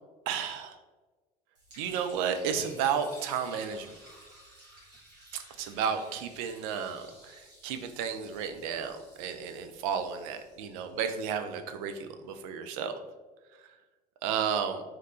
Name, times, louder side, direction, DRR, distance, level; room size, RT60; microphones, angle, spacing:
voice 1, 0.3-0.8 1.8-4.0 5.3-13.0 13.5-13.7 14.2-14.8, right 7 dB, 55° right, 8 dB, 0.4 m, -33 dB
Liquid, 1.5-11.7, right 1 dB, 75° right, 1.1 m, -55 dB
3.1 x 3.1 x 2.4 m, 1.3 s
figure-of-eight pair, 65°, 21 cm